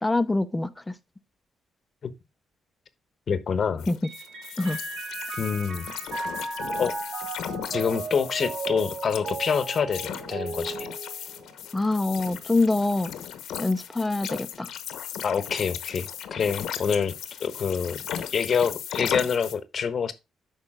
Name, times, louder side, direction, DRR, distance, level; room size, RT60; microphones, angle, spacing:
voice 1, 0.0-0.9 3.9-4.0 4.6-4.8 11.7-13.1 13.6-14.7, left 2 dB, 15° left, 0.9 m, -25 dB
voice 2, 3.3-3.9 5.4-5.9 6.8-6.9 7.7-10.9 15.2-17.1 17.4-18.0 18.3-20.1, left 6 dB, 50° left, 1.1 m, -26 dB
sound 1, 3.8-19.5, left 9 dB, 80° left, 1.1 m, -37 dB
Mallet percussion, 4.0-11.8, right 3 dB, 75° right, 2.3 m, -35 dB
8.8 x 5.5 x 3.7 m
cardioid pair, 90°, 0 cm